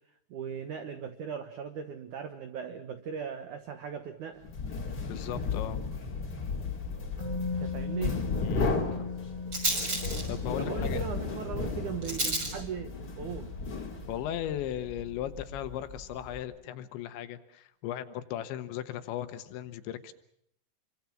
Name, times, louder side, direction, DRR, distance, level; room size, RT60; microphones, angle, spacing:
voice 1, 0.3-4.4 7.6-8.2 10.6-13.5, right 7 dB, 80° right, 9 dB, 1.7 m, -38 dB
sound 1, 4.4-14.4, left 4 dB, 25° left, 2.6 m, -34 dB
voice 2, 5.1-5.9 8.4-8.7 8.9-9.1 9.9-11.0 14.1-20.1, left 11 dB, 75° left, 11 dB, 3.4 m, -37 dB
Rattle, 6.5-16.4, right 2 dB, 25° right, 6.6 m, -38 dB
Musical instrument, 7.2-15.1 15.4-15.5, left 4 dB, 60° right, 7.8 m, -40 dB
27.0 x 25.0 x 6.0 m, 0.72 s
omnidirectional pair, 5.5 m